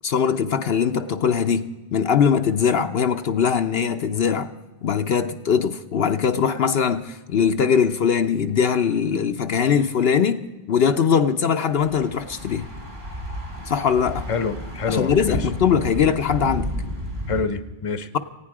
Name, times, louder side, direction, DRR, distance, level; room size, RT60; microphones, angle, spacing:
voice 1, 0.0-4.5 4.8-10.4 10.7-12.7 13.7-14.3 14.9-16.7, left 7 dB, 70° left, 1.0 m, -21 dB
Thunder / Bicycle, 11.7-17.4, equal, 70° right, 3.5 m, -32 dB
voice 2, 14.3-15.5 17.3-18.1, left 4 dB, 35° left, 0.9 m, -26 dB
18.5 x 16.0 x 4.8 m
omnidirectional pair, 1.1 m